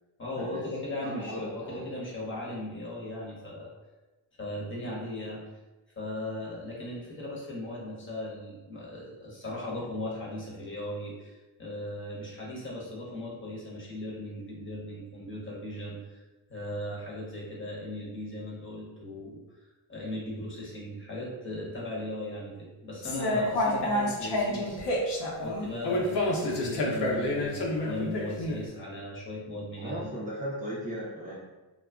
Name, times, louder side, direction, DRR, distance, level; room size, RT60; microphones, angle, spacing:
voice 1, 0.2-3.7 4.4-5.4 6.0-16.2 16.5-19.4 19.9-25.1 25.4-30.2, left 1 dB, 25° left, -4 dB, 1.0 m, -37 dB
voice 2, 1.0-1.8 29.8-31.5, equal, 15° right, -6 dB, 0.4 m, -37 dB
sound 1, 23.0-28.6, left 1 dB, 55° left, 0.8 m, -28 dB
2.2 x 2.0 x 3.5 m, 1.1 s
cardioid pair, 85°, 50 cm